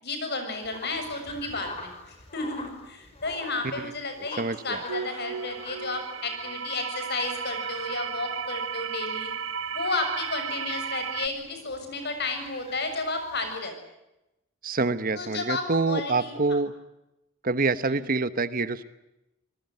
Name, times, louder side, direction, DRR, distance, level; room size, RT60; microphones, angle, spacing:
voice 1, 0.0-9.3 9.7-13.7 15.1-16.6 17.9-18.0, left 3 dB, 55° left, 7 dB, 7.1 m, -32 dB
sound 1, 0.5-13.6, left 3 dB, 30° left, 5.4 m, -46 dB
voice 2, 4.4-4.8 14.6-16.7 17.4-18.8, right 3 dB, 45° right, 13 dB, 1.2 m, -26 dB
sound 2, 4.9-11.3, right 6 dB, 85° right, 1.0 m, -34 dB
27.5 x 20.5 x 9.3 m, 0.92 s
head